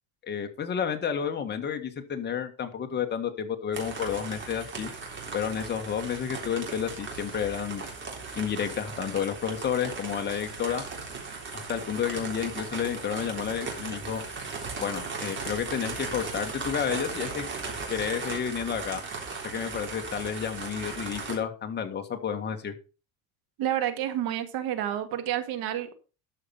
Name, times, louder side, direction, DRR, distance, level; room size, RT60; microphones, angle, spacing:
voice 1, 0.2-4.9 5.3-7.8 8.3-10.8 11.5-14.2 14.8-17.4 17.9-19.0 19.4-22.7, left 8 dB, 25° left, 1.7 m, -31 dB
sound 1, 3.7-21.4, right 4 dB, 25° right, 3.6 m, -37 dB
voice 2, 23.6-25.9, right 11 dB, 55° right, 2.0 m, -29 dB
12.5 x 5.9 x 5.7 m
cardioid pair, 150°, 42 cm